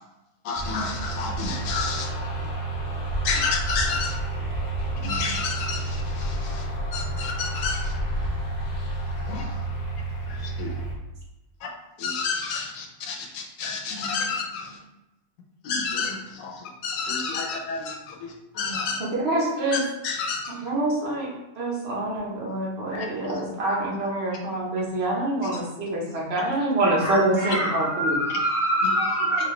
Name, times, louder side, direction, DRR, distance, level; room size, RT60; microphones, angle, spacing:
voice 1, 0.4-2.1 3.2-4.2 5.0-6.7 6.9-7.9 9.3-9.5 10.3-10.7 11.6-11.7 12.0-14.8 15.6-18.2 18.5-19.0 19.7-20.6 22.9-23.4 23.7-23.8 25.4-25.6, left 4 dB, 65° left, 1 dB, 1.0 m, -30 dB
sound 1, 0.6-11.0, right 1 dB, 45° left, 0.6 m, -30 dB
voice 2, 19.0-19.8 20.6-21.3 21.6-28.1, right 2 dB, 50° right, -3 dB, 1.1 m, -26 dB
voice 3, 27.0-29.5, equal, 25° right, -7 dB, 1.1 m, -25 dB
4.3 x 2.3 x 3.1 m, 0.95 s
omnidirectional pair, 1.6 m